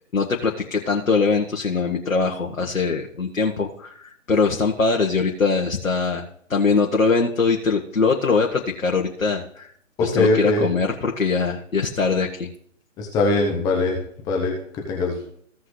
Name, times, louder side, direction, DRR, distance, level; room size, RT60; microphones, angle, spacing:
voice 1, 0.1-9.7 10.0-12.5, left 4 dB, 90° left, 1 dB, 1.4 m, -22 dB
voice 2, 10.0-10.7 13.0-14.0 14.3-14.5 14.9-15.2, left 2 dB, 10° left, 0 dB, 0.9 m, -21 dB
16.0 x 5.8 x 3.2 m, 0.65 s
hypercardioid pair, 150°, 39 cm